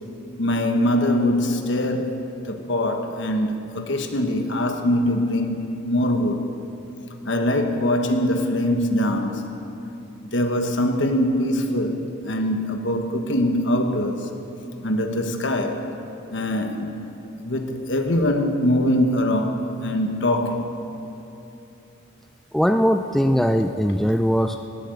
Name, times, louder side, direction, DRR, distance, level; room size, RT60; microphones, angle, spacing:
voice 1, 0.4-6.4 7.2-9.5 10.2-14.3 14.8-15.9 16.3-17.0 17.4-20.7, left 1 dB, 65° left, 1.4 m, -23 dB
voice 2, 22.5-24.7, equal, ahead, 0.3 m, -20 dB
18.5 x 8.7 x 8.0 m
head